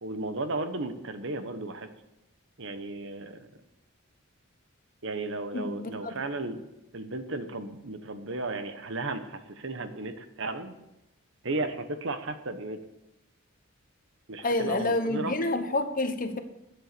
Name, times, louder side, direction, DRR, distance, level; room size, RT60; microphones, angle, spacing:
voice 1, 0.0-1.9 2.6-3.5 5.0-6.6 6.9-10.7 11.4-12.8 14.3-15.3, right 2 dB, 60° right, 9 dB, 1.1 m, -34 dB
voice 2, 5.5-6.1 14.4-16.4, left 2 dB, 40° left, 8 dB, 1.1 m, -28 dB
11.0 x 8.0 x 6.8 m, 0.91 s
head